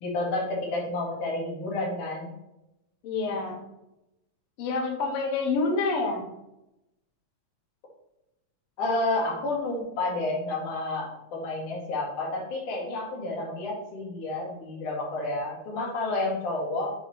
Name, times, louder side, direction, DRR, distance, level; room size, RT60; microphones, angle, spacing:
voice 1, 0.0-2.3 8.8-16.9, left 2 dB, 85° left, -3 dB, 3.3 m, -30 dB
voice 2, 3.0-3.6 4.6-6.3, left 3 dB, 60° left, 2 dB, 1.7 m, -27 dB
7.9 x 3.1 x 4.5 m, 0.90 s
omnidirectional pair, 3.4 m